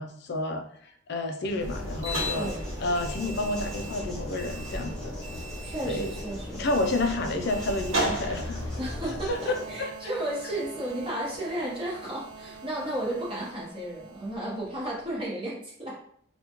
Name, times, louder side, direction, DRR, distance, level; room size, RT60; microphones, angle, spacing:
voice 1, 0.0-2.5 2.8-5.1 5.9-6.1 6.5-8.6 9.3-9.4 9.8-9.9, left 2 dB, 55° left, 5 dB, 0.4 m, -30 dB
sound 1, 1.4-9.8, left 1 dB, 5° left, 0.7 m, -41 dB
sound 2, 1.6-9.3, equal, 85° right, 0.9 m, -34 dB
voice 2, 5.6-6.7 8.8-16.0, right 1 dB, 25° right, -6 dB, 1.0 m, -33 dB
sound 3, 7.3-15.2, right 5 dB, 65° right, 0.5 m, -47 dB
3.5 x 2.3 x 2.9 m, 0.63 s
head